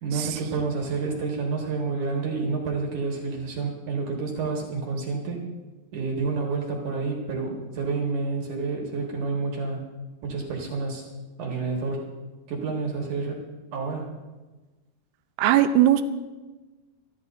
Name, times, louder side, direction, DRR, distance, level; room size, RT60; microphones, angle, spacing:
voice 1, 0.0-5.4 5.9-9.8 10.2-11.1 11.4-12.0 12.5-13.4 13.7-14.1, right 4 dB, 60° right, 0 dB, 2.6 m, -29 dB
voice 2, 15.4-16.0, right 12 dB, 80° right, 9 dB, 2.5 m, -19 dB
27.0 x 11.5 x 2.6 m, 1.2 s
omnidirectional pair, 4.7 m